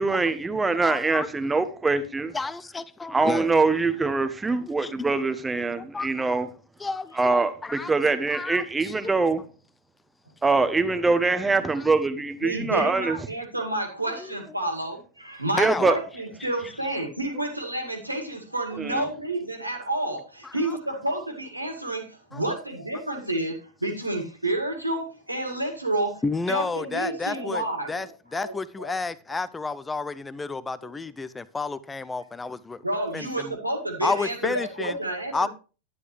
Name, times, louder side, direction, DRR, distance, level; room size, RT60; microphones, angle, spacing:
voice 1, 0.0-2.3 3.1-6.5 7.2-9.4 10.4-13.2 15.6-16.0 18.8-19.1, right 3 dB, 10° right, 1.1 m, -23 dB
voice 2, 0.8-1.3 2.3-3.5 4.8-5.1 5.8-6.4 6.8-9.0 11.8-11.9 12.8-12.9 14.2-14.3 15.6-15.9 16.6-16.7 20.1-20.2 20.4-20.8 22.3-22.6 26.2-32.8 33.1-33.6 34.0-35.0 35.3-35.5, left 3 dB, 10° left, 0.6 m, -31 dB
voice 3, 12.4-28.1 28.3-28.9 32.8-35.5, right 1 dB, 85° right, 2.1 m, -30 dB
11.0 x 9.7 x 3.2 m
figure-of-eight pair, 90°, 0 cm